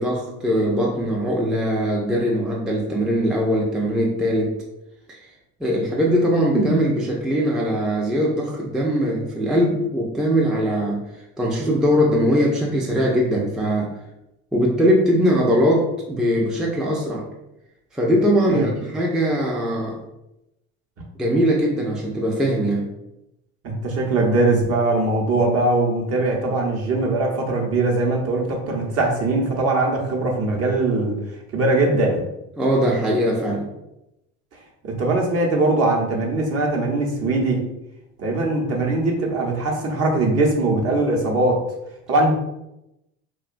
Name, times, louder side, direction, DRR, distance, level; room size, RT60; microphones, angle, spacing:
voice 1, 0.0-4.6 5.1-5.2 5.6-11.0 11.4-14.0 14.5-17.3 17.9-20.0 21.2-22.9 32.6-33.7, equal, ahead, -2 dB, 0.3 m, -21 dB
voice 2, 23.6-31.1 31.5-32.2 34.8-37.6 38.2-41.6 42.1-42.3, right 2 dB, 45° right, 0 dB, 0.8 m, -21 dB
2.9 x 2.2 x 2.5 m, 0.89 s
supercardioid pair, 85°, 34 cm